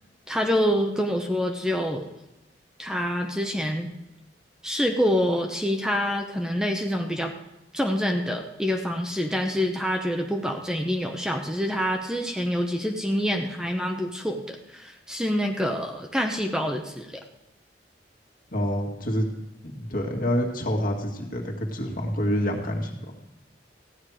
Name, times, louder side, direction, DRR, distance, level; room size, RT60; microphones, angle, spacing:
voice 1, 0.3-2.1 2.8-3.9 4.6-7.3 7.7-17.2, equal, 5° right, 3 dB, 0.8 m, -26 dB
voice 2, 18.5-19.3 19.6-23.1, equal, 55° left, 1 dB, 2.1 m, -27 dB
15.0 x 9.5 x 4.9 m, 0.95 s
head